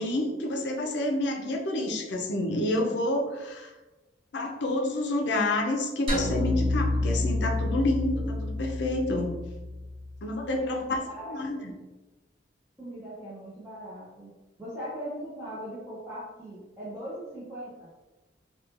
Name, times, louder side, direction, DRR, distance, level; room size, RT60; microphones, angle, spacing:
voice 1, 0.0-3.7 4.3-9.3 10.2-11.0 11.3-11.7, left 1 dB, 70° left, 2 dB, 0.4 m, -28 dB
sound 1, 6.1-10.5, left 2 dB, 30° right, 1.0 m, -29 dB
voice 2, 10.5-11.6 12.8-14.3 14.6-17.9, equal, 10° right, -10 dB, 0.6 m, -39 dB
2.9 x 2.2 x 2.4 m, 1.1 s
head